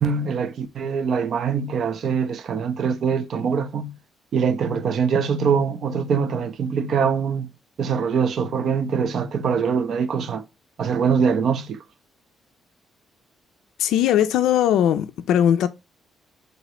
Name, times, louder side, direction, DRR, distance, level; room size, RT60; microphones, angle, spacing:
voice 1, 0.0-3.9 4.3-7.5 7.8-10.4 10.8-11.8, right 6 dB, 65° right, 0.4 m, -23 dB
voice 2, 13.8-15.7, left 10 dB, 85° left, 0.3 m, -19 dB
3.8 x 2.9 x 3.0 m
cardioid pair, 90°, 0 cm